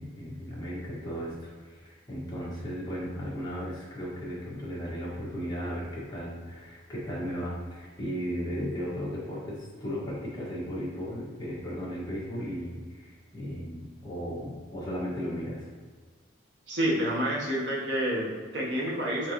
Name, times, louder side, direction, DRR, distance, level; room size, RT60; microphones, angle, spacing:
voice 1, 0.0-15.7, equal, 20° left, -8 dB, 1.5 m, -36 dB
voice 2, 16.7-19.3, right 1 dB, 65° right, -4 dB, 1.1 m, -29 dB
4.5 x 4.0 x 3.0 m, 1.5 s
head